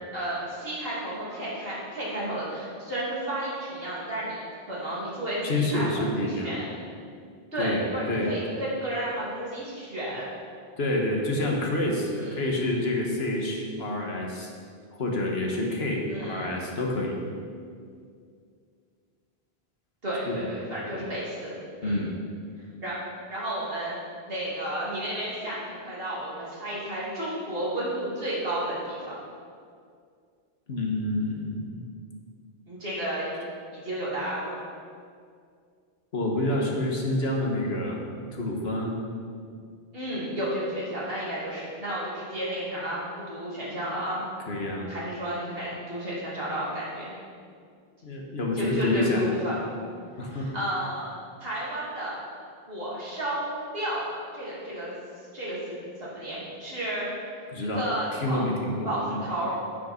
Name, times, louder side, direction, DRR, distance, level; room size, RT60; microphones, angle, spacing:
voice 1, 0.1-4.4 4.7-6.6 7.5-10.2 12.1-12.4 16.1-16.5 20.0-21.5 21.8-22.0 22.8-23.0 23.3-24.0 24.3-29.0 32.7-33.3 33.7-34.6 39.9-44.2 44.9-47.1 48.5-49.7 50.2-51.1 51.4-52.2 52.7-54.0 54.3-54.9 55.3-57.1 57.6-58.5 58.8-59.6, right 1 dB, 70° right, -7 dB, 3.0 m, -32 dB
voice 2, 5.4-6.5 7.6-8.3 10.8-14.5 14.9-17.2 20.3-20.4 20.9-21.0 21.8-22.2 30.7-31.8 36.1-38.0 38.3-39.0 44.5-44.9 48.0-49.2 50.2-50.5 57.5-57.9 58.1-59.2, left 1 dB, 80° left, 0 dB, 1.6 m, -28 dB
9.2 x 8.4 x 4.4 m, 2.2 s
omnidirectional pair, 1.0 m